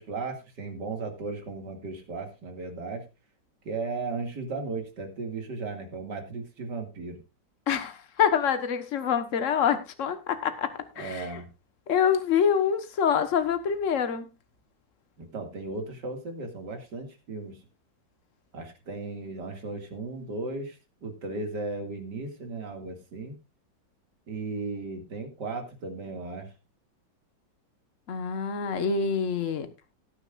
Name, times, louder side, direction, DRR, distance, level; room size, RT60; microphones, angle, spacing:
voice 1, 0.0-3.1 3.6-7.2 11.0-11.5 15.2-17.6 18.5-23.4 24.3-26.5, right 3 dB, 65° right, 5 dB, 2.8 m, -36 dB
voice 2, 7.7-11.3 11.9-14.3 28.1-29.7, left 7 dB, 45° left, 9 dB, 1.5 m, -26 dB
18.0 x 9.6 x 2.5 m, 0.26 s
omnidirectional pair, 2.0 m